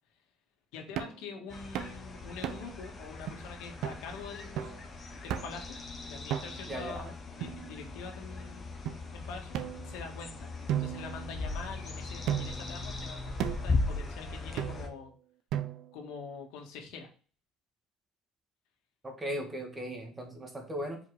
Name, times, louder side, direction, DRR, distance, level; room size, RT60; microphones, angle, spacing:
voice 1, 0.7-4.9 5.1-5.8 6.0-8.7 9.1-9.6 9.8-10.5 10.7-15.1 15.9-17.1, left 5 dB, 85° left, 3 dB, 1.8 m, -45 dB
sound 1, 1.0-1.2 1.7-2.0 2.4-2.8 3.3-3.4 3.8-4.0 4.6-4.8 5.3-5.7 6.3-6.7 7.4-8.1 8.9-9.0 9.5-10.2 10.7-11.7 12.3-12.7 13.4-13.8 14.6-15.0 15.5-16.0, right 10 dB, 55° right, 0.8 m, -36 dB
sound 2, 1.5-14.9, left 3 dB, 25° left, 1.2 m, -38 dB
voice 2, 6.7-7.0 19.0-21.0, equal, 15° right, 2 dB, 1.7 m, -37 dB
5.2 x 5.0 x 4.8 m, 0.39 s
cardioid pair, 160°, 0 cm